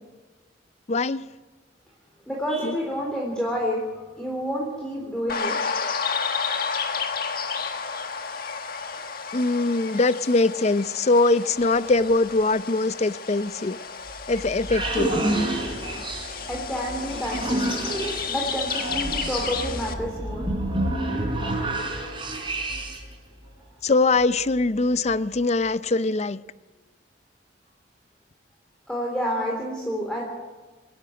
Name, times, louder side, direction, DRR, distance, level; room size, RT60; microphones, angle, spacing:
voice 1, 0.9-1.3 2.6-2.8 9.3-13.8 14.3-15.1 23.8-26.4, left 3 dB, 40° left, 0.5 m, -22 dB
voice 2, 2.3-3.9 4.2-5.5 16.5-17.7 18.3-20.4 28.9-30.2, equal, 5° left, 3.6 m, -29 dB
sound 1, 5.3-19.9, left 6 dB, 55° left, 1.6 m, -32 dB
sound 2, 14.1-23.1, right 1 dB, 30° right, 4.6 m, -29 dB
25.5 x 11.5 x 9.5 m
head